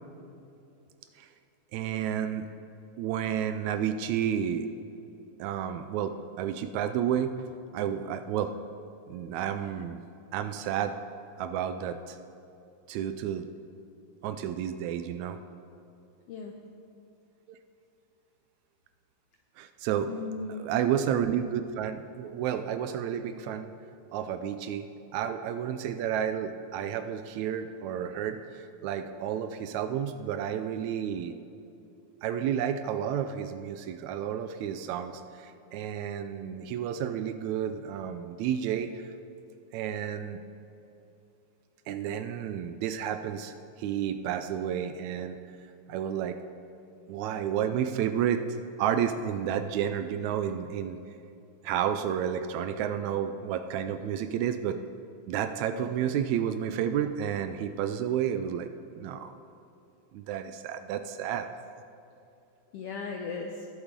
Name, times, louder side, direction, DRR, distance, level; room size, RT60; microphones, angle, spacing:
voice 1, 1.7-2.5 3.0-4.7 5.4-8.5 9.1-10.0 10.3-10.9 11.4-12.2 12.9-13.5 14.2-15.4 17.5-17.6 19.6-20.1 20.6-23.7 24.1-31.4 32.2-38.9 39.7-40.4 41.9-45.4 45.9-46.4 47.1-48.4 48.8-51.0 51.6-54.8 55.3-58.7 59.0-59.3 60.1-61.5, right 9 dB, 80° right, 9 dB, 1.8 m, -31 dB
voice 2, 20.1-20.7 55.7-55.9 62.7-63.7, left 4 dB, 80° left, 2 dB, 1.4 m, -37 dB
20.0 x 8.3 x 3.7 m, 2.7 s
omnidirectional pair, 3.5 m